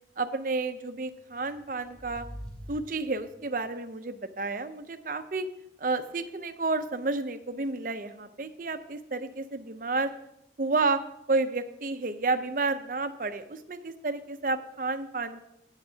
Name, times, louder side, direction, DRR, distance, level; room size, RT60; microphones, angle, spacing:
voice 1, 0.2-2.2 2.7-5.5 5.8-10.1 10.6-11.0 11.3-15.5, right 3 dB, 50° right, 10 dB, 0.6 m, -31 dB
sound 1, 1.2-3.6, equal, 5° left, 2.1 m, -45 dB
14.5 x 8.9 x 2.8 m, 0.84 s
head